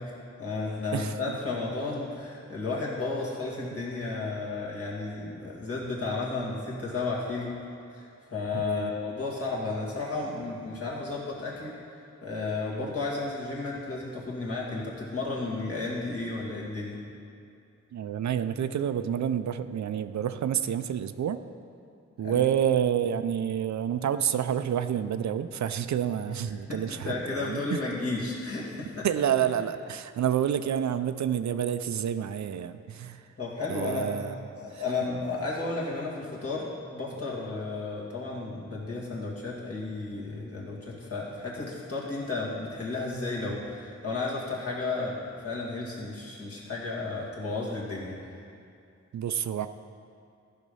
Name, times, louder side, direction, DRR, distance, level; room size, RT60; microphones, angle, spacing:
voice 1, 0.0-7.6 7.9-11.8 12.2-17.0 22.2-22.4 26.7-29.1 33.4-34.1 34.6-48.4, left 3 dB, 50° left, -5 dB, 2.3 m, -33 dB
voice 2, 0.9-1.4 3.7-3.8 8.5-8.9 12.8-13.0 17.9-21.4 22.2-27.8 29.0-33.3 33.7-34.3 34.7-34.8 49.1-49.7, right 9 dB, 70° right, 11 dB, 0.4 m, -29 dB
14.0 x 5.2 x 5.5 m, 2.5 s
wide cardioid pair, 120°, 29 cm